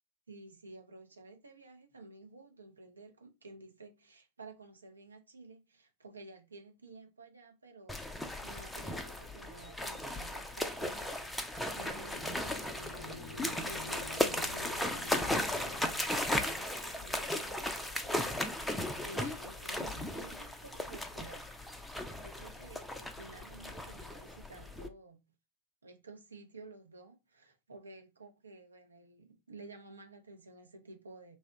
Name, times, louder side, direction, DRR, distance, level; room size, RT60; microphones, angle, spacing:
voice 1, 0.3-21.5 21.9-25.2 25.8-31.4, right 3 dB, 75° right, 0.6 m, -53 dB
sound 1, 7.9-24.9, left 1 dB, 5° left, 0.4 m, -36 dB
sound 2, 11.8-16.8, left 2 dB, 60° left, 0.6 m, -49 dB
2.7 x 2.0 x 3.6 m
figure-of-eight pair, 90°, 0 cm